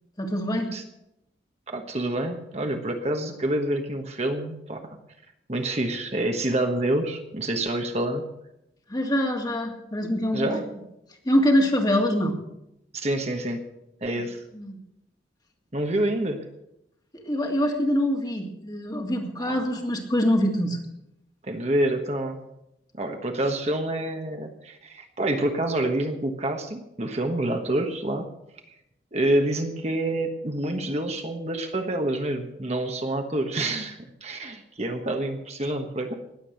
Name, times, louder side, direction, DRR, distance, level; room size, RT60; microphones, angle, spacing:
voice 1, 0.2-0.7 8.9-10.7 11.3-12.4 14.5-14.8 17.1-20.8, equal, 20° left, 2 dB, 2.0 m, -24 dB
voice 2, 1.7-5.0 5.5-8.2 10.3-10.7 12.9-13.6 14.0-14.4 15.7-16.4 19.4-19.7 21.4-22.4 22.9-28.3 29.1-36.1, right 1 dB, 35° right, 4 dB, 1.3 m, -27 dB
19.0 x 7.7 x 6.4 m, 0.85 s
head